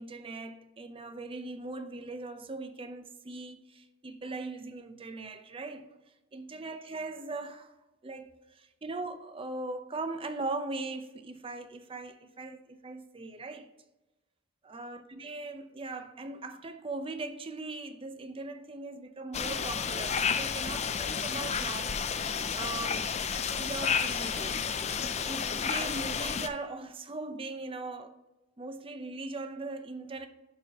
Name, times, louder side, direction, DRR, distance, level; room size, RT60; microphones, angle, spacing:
voice 1, 0.0-5.9 6.3-7.7 8.0-8.3 8.5-13.7 14.6-22.0 22.5-23.1 23.5-24.6 25.2-28.2 28.6-30.3, right 3 dB, 30° right, 0.6 m, -39 dB
sound 1, 19.3-26.5, left 6 dB, 35° left, 0.5 m, -31 dB
11.5 x 4.6 x 2.9 m
head